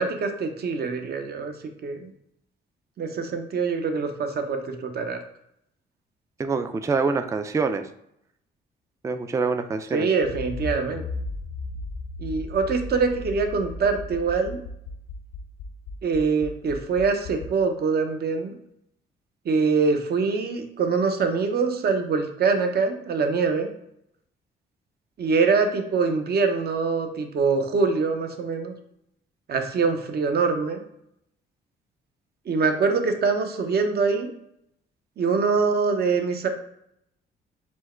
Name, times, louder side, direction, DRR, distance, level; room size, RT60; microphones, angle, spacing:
voice 1, 0.0-1.5 1.8-2.1 3.0-5.2 9.9-11.0 12.2-14.6 16.0-18.5 19.4-23.7 25.2-28.7 29.5-30.8 32.5-34.3 35.2-36.5, right 4 dB, 55° right, 5 dB, 0.8 m, -24 dB
voice 2, 6.4-7.9 9.0-10.1, right 4 dB, 15° right, 8 dB, 0.3 m, -25 dB
Accelerating revving vroom, 10.2-17.5, left 3 dB, 85° left, 0.7 m, -36 dB
4.5 x 2.2 x 4.3 m, 0.74 s
cardioid pair, 90°, 20 cm